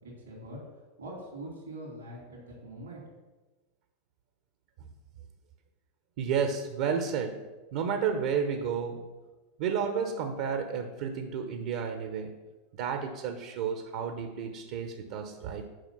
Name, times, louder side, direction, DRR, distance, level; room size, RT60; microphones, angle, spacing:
voice 1, 0.0-3.0, right 1 dB, 90° right, -3 dB, 3.0 m, -43 dB
voice 2, 6.2-7.4 7.7-9.1 9.6-12.4 12.8-15.7, right 6 dB, 60° right, 6 dB, 0.9 m, -31 dB
7.9 x 5.2 x 5.8 m, 1.2 s
hypercardioid pair, 90°, 0 cm